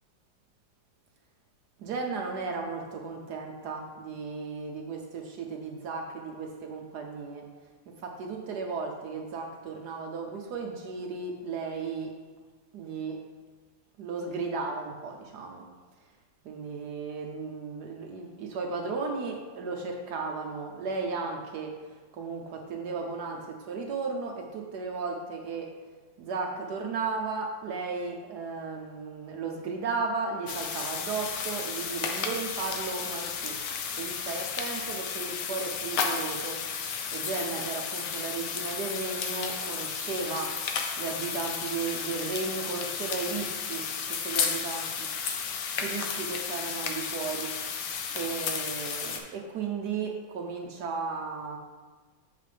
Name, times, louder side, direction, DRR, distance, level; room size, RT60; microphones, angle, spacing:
voice 1, 1.8-7.4 7.9-12.1 12.7-13.2 14.0-15.6 16.4-25.7 26.2-33.6 34.0-36.6 37.1-40.5 41.0-45.1 45.8-47.5 48.1-51.6, right 4 dB, 65° right, 2 dB, 1.1 m, -35 dB
sound 1, 30.5-49.2, left 6 dB, 70° left, 1.2 m, -33 dB
7.5 x 5.6 x 3.3 m, 1.4 s
omnidirectional pair, 2.1 m